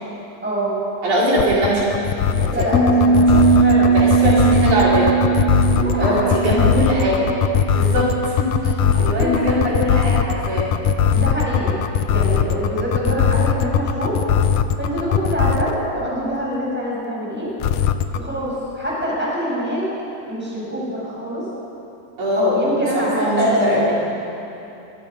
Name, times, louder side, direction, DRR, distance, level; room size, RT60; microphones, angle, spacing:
voice 1, 0.4-0.8 2.5-2.8 3.0-3.1 3.6-4.5 5.7-6.3 8.9-9.4 11.1-11.8 12.1-14.2 14.8-17.5 18.1-19.8 20.3-21.4 22.3-23.9, equal, 5° right, -6 dB, 6.4 m, -24 dB
voice 2, 1.0-1.9 2.3-2.7 3.1-3.5 3.9-5.1 6.0-7.3 7.7-8.7 9.0-10.7 22.2-22.6 22.9-23.9, equal, 80° right, -6 dB, 6.1 m, -21 dB
sound 1, 1.4-15.8 17.6-18.2, left 8 dB, 85° left, 2.3 m, -18 dB
Piano, 2.7-8.3, right 5 dB, 60° left, 6.7 m, -19 dB
24.0 x 21.5 x 5.5 m, 2.9 s
omnidirectional pair, 3.4 m